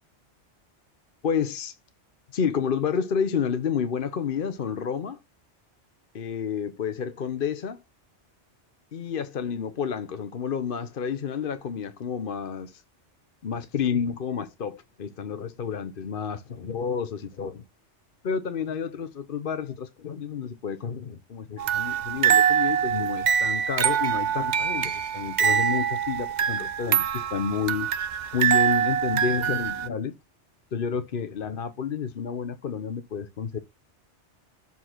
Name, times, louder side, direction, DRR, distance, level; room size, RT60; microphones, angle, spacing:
voice 1, 1.2-1.8 2.3-5.2 6.1-7.8 8.9-12.8 13.4-17.6 18.2-27.9 28.3-30.1 30.7-33.6, left 7 dB, 55° left, 0.9 m, -30 dB
sound 1, 21.6-29.9, right 8 dB, 50° right, 0.6 m, -24 dB
7.5 x 4.0 x 5.8 m
omnidirectional pair, 1.2 m